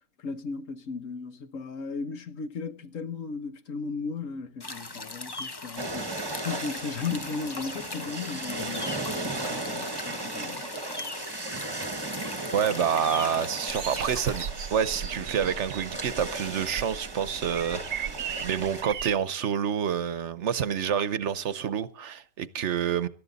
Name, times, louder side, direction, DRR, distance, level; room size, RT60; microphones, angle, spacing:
voice 1, 0.2-10.7, left 5 dB, 85° left, 1.6 m, -36 dB
sound 1, 4.6-14.5, left 3 dB, 25° left, 0.7 m, -40 dB
sound 2, 5.8-18.8, right 2 dB, 20° right, 1.2 m, -36 dB
voice 2, 12.5-23.1, right 8 dB, 65° right, 1.1 m, -28 dB
sound 3, 13.7-19.1, right 8 dB, 85° right, 1.3 m, -37 dB
18.5 x 13.5 x 4.1 m
omnidirectional pair, 1.3 m